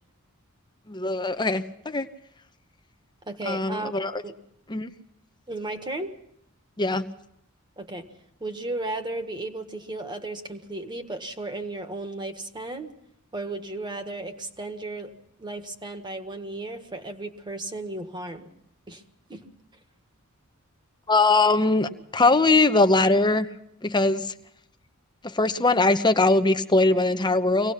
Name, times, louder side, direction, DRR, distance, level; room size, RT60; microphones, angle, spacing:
voice 1, 0.9-2.1 3.4-4.2 4.7-4.9 6.8-7.0 21.1-23.5 23.8-24.3 25.2-27.7, left 2 dB, 20° left, 10 dB, 1.0 m, -21 dB
voice 2, 3.3-4.3 5.5-6.1 7.8-8.1 8.4-12.9 13.3-15.1 15.4-18.5 18.9-19.0 19.3-19.4, right 2 dB, 20° right, 6 dB, 1.6 m, -34 dB
25.0 x 18.0 x 5.8 m, 0.76 s
head